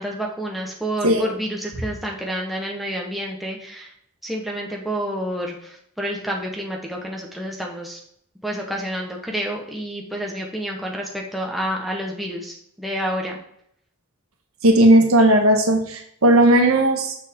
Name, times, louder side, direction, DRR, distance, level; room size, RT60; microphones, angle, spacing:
voice 1, 0.0-3.9 4.2-8.0 8.4-13.4, equal, ahead, -1 dB, 1.0 m, -29 dB
voice 2, 14.6-17.2, right 1 dB, 85° right, 3 dB, 1.4 m, -16 dB
7.2 x 6.0 x 3.6 m, 0.71 s
head